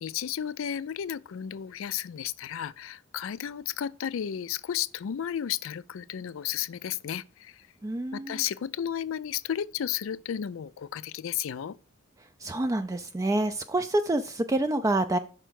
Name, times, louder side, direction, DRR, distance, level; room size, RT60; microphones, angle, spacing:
voice 1, 0.0-7.5 8.1-11.8, left 9 dB, 70° left, 0.4 m, -33 dB
voice 2, 7.8-8.4 12.4-15.2, right 2 dB, 15° right, 0.3 m, -27 dB
5.9 x 4.5 x 6.3 m
head